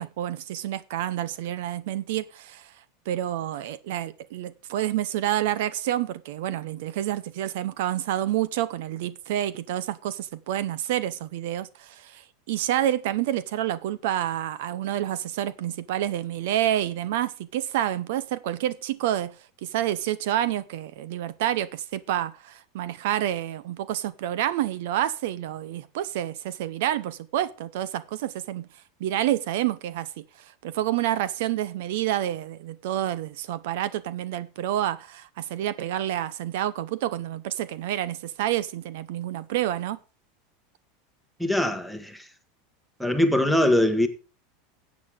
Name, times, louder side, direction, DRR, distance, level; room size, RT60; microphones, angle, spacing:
voice 1, 0.0-2.7 3.1-19.4 19.6-28.7 29.0-30.2 30.6-40.0, right 12 dB, 70° right, 0.8 m, -28 dB
voice 2, 41.4-42.3 43.0-44.1, left 1 dB, ahead, 1.4 m, -22 dB
13.5 x 8.5 x 3.6 m
supercardioid pair, 150°, 0 cm